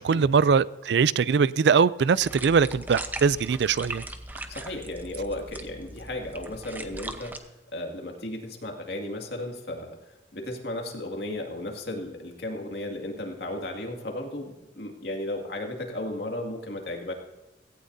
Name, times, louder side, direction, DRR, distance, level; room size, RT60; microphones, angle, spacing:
voice 1, 0.0-4.0, right 6 dB, 70° right, 19 dB, 0.4 m, -22 dB
sound 1, 2.2-7.4, right 2 dB, 10° right, 0.8 m, -39 dB
voice 2, 4.5-17.1, left 1 dB, 65° left, 2 dB, 2.2 m, -35 dB
17.0 x 15.5 x 2.7 m, 1.1 s
head